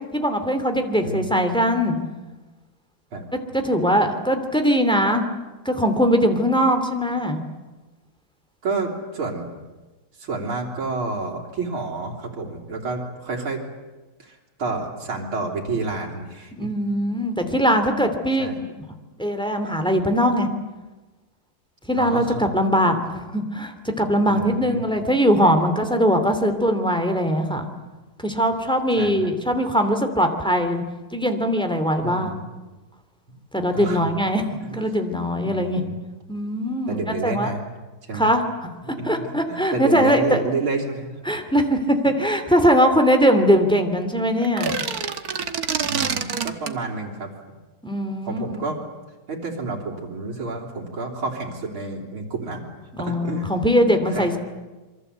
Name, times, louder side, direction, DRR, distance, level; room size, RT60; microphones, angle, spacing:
voice 1, 0.1-2.0 3.5-5.2 5.6-7.4 16.6-18.7 19.2-20.5 21.9-27.7 28.2-30.8 31.1-32.4 33.5-34.4 34.7-35.8 36.3-37.5 38.1-38.7 39.0-40.4 41.3-44.8 47.8-48.7 53.0-54.4, equal, ahead, 6 dB, 2.6 m, -21 dB
voice 2, 8.6-9.5 10.2-13.6 14.2-16.7 18.4-18.6 22.0-22.5 22.9-23.0 24.3-24.8 29.0-29.3 32.0-32.4 33.7-34.1 34.6-34.9 35.4-36.0 36.9-37.6 38.1-38.3 38.8-41.1 42.0-42.1 45.9-47.3 48.2-48.8 49.3-52.6 53.0-53.5 54.1-54.4, right 3 dB, 80° right, -2 dB, 4.1 m, -30 dB
sound 1, 44.4-46.8, right 6 dB, 50° right, 1.7 m, -26 dB
27.0 x 24.0 x 8.2 m, 1.2 s
omnidirectional pair, 2.3 m